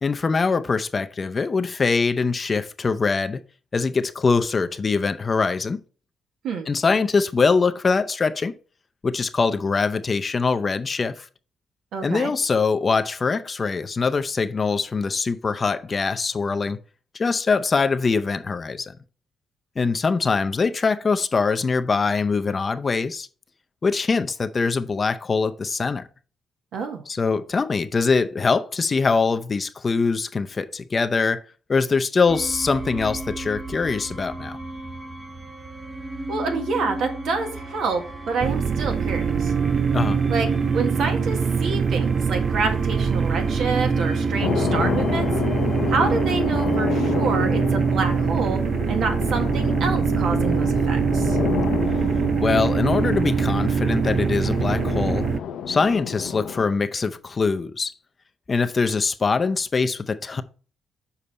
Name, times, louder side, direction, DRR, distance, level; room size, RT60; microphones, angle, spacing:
voice 1, 0.0-3.4 3.7-5.8 6.7-8.5 9.0-11.3 12.0-16.8 17.1-18.9 19.8-23.3 23.8-26.0 27.1-31.4 31.7-34.6 39.9-40.2 52.4-55.3 55.7-57.9 58.5-60.4, left 4 dB, 35° left, 0.5 m, -23 dB
voice 2, 11.9-12.3 26.7-27.0 36.3-39.5 40.3-40.5 40.7-45.3 45.9-48.6 48.9-51.4, right 4 dB, 75° right, 1.6 m, -27 dB
sound 1, 32.3-46.8, right 1 dB, 15° right, 0.8 m, -34 dB
sound 2, 38.4-55.4, right 6 dB, 50° right, 0.4 m, -23 dB
sound 3, 44.4-56.7, left 8 dB, 75° left, 0.6 m, -29 dB
6.9 x 4.9 x 4.2 m
cardioid pair, 105°, 0 cm